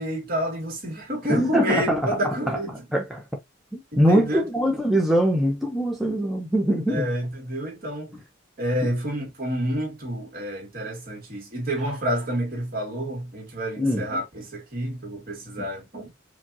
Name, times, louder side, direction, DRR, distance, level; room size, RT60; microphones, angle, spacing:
voice 1, 0.0-2.8 3.9-4.4 6.9-8.1 8.6-16.1, equal, 50° right, 2.0 m, -29 dB
voice 2, 1.3-2.2 2.5-2.6 2.9-3.2 3.7-7.1 8.8-8.9 13.8-14.0 15.6-15.7, equal, ahead, 0.8 m, -22 dB
5.0 x 2.4 x 2.8 m
head